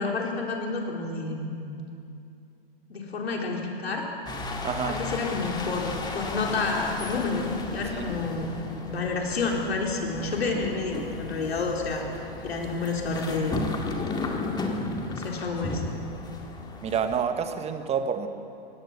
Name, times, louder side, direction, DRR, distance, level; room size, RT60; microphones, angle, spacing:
voice 1, 0.0-1.6 2.9-4.0 4.9-8.5 8.8-12.1 12.4-13.6 15.1-15.8, left 3 dB, 80° left, 0 dB, 3.8 m, -29 dB
sound 1, 4.3-17.2, left 3 dB, 15° left, 2.0 m, -35 dB
voice 2, 4.6-5.0 7.9-8.0 16.8-18.3, right 7 dB, 20° right, 8 dB, 1.3 m, -28 dB
21.0 x 17.0 x 7.2 m, 2.6 s
hypercardioid pair, 120°, 30 cm